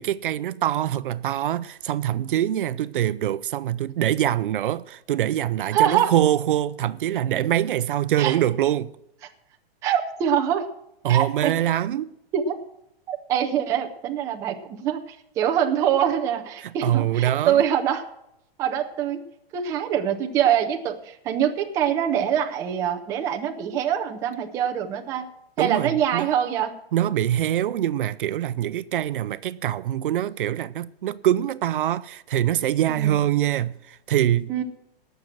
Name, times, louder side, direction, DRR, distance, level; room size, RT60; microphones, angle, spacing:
voice 1, 0.0-8.9 11.0-12.1 16.6-17.6 25.6-26.3 26.9-34.5, right 12 dB, 60° right, 0.6 m, -24 dB
voice 2, 5.7-6.1 8.2-8.4 9.8-10.7 11.1-11.5 12.3-12.5 13.1-18.0 18.6-19.2 19.5-25.2 25.6-26.7 32.9-33.2 34.5-34.6, right 9 dB, 10° right, 0.5 m, -24 dB
18.0 x 6.7 x 6.0 m
hypercardioid pair, 165°, 30 cm